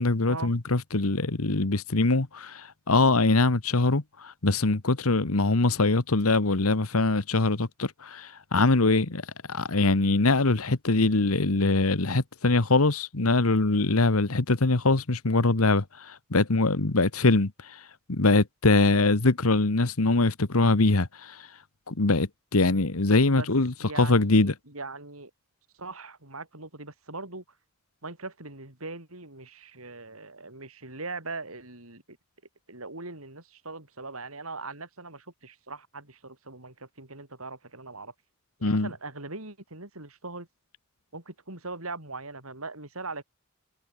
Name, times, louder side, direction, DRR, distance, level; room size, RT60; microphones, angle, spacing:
voice 1, 0.0-9.2 9.5-17.8 18.1-21.5 21.9-24.5 38.6-38.9, left 2 dB, 90° left, 1.5 m, -23 dB
voice 2, 23.8-25.3 25.8-27.4 28.0-32.0 32.7-38.1 38.6-40.5 41.1-43.2, right 3 dB, 80° right, 7.4 m, -40 dB
head